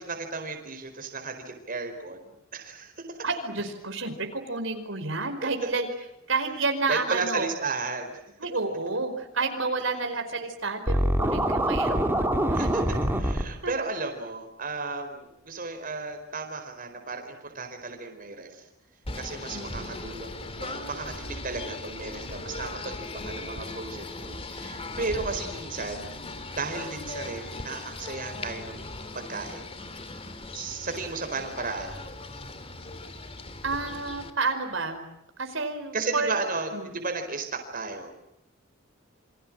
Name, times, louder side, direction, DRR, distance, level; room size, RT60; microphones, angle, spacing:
voice 1, 0.0-3.2 5.4-5.7 6.9-8.2 12.5-12.8 13.2-18.6 19.1-26.1 26.6-28.8 29.1-29.7 30.5-32.0 35.9-38.2, right 3 dB, 45° right, 5 dB, 4.7 m, -34 dB
voice 2, 3.2-5.9 6.3-7.5 8.4-12.6 13.6-13.7 19.5-20.1 33.6-35.0 35.4-36.3 36.7-37.0, right 3 dB, 70° right, 6 dB, 4.8 m, -30 dB
Scratching (performance technique), 10.9-13.4, right 1 dB, 10° right, 3.3 m, -24 dB
Singing / Bird, 19.0-34.3, left 2 dB, 30° left, 2.7 m, -38 dB
29.0 x 26.0 x 7.6 m, 0.85 s
head